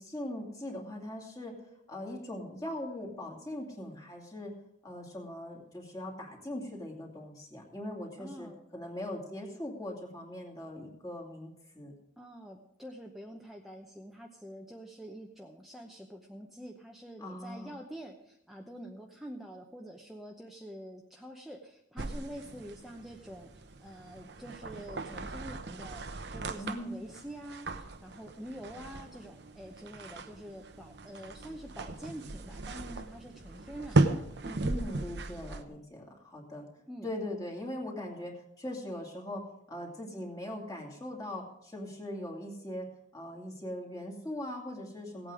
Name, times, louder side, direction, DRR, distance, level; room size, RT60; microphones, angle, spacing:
voice 1, 0.0-1.5 1.9-4.5 4.8-11.9 17.2-17.7 26.6-26.9 34.6-36.7 37.0-42.9 43.1-45.3, left 1 dB, 20° left, 0 dB, 2.4 m, -40 dB
voice 2, 8.2-8.6 12.2-26.1 26.3-34.7 36.9-37.1, equal, ahead, 0 dB, 0.8 m, -46 dB
sound 1, 22.0-35.6, right 2 dB, 60° right, 0.8 m, -36 dB
17.0 x 8.7 x 5.0 m, 0.79 s
head